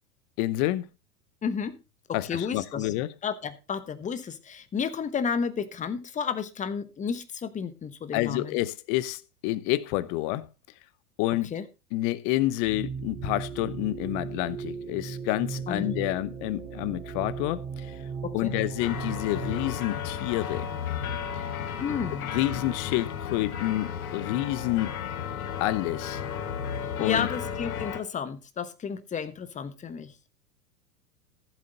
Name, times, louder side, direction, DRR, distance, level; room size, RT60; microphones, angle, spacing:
voice 1, 0.4-0.9 2.1-3.1 8.1-10.5 11.2-11.5 11.9-17.9 18.3-20.7 21.3-21.4 21.9-22.0 22.3-24.9 25.6-26.2 27.0-27.3, left 16 dB, 40° left, 0.9 m, -28 dB
voice 2, 1.4-1.8 2.1-2.9 3.2-8.6 11.5-11.6 15.7-15.9 18.2-18.5 21.8-22.3 27.0-30.1, left 6 dB, 15° left, 1.1 m, -32 dB
sound 1, 12.6-19.7, right 6 dB, 10° right, 3.4 m, -37 dB
sound 2, 18.8-28.0, left 8 dB, 65° left, 1.7 m, -34 dB
15.0 x 7.7 x 4.0 m
figure-of-eight pair, 95°, 45 cm